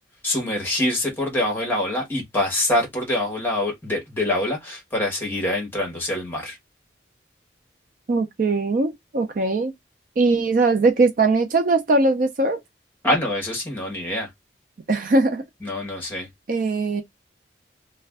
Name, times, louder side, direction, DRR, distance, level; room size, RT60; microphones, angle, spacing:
voice 1, 0.2-6.6 13.0-14.3 15.6-16.3, left 1 dB, 10° left, 1.0 m, -25 dB
voice 2, 8.1-9.7 10.2-12.6 14.9-15.4 16.5-17.0, right 3 dB, 45° right, 0.4 m, -20 dB
2.4 x 2.2 x 3.3 m
head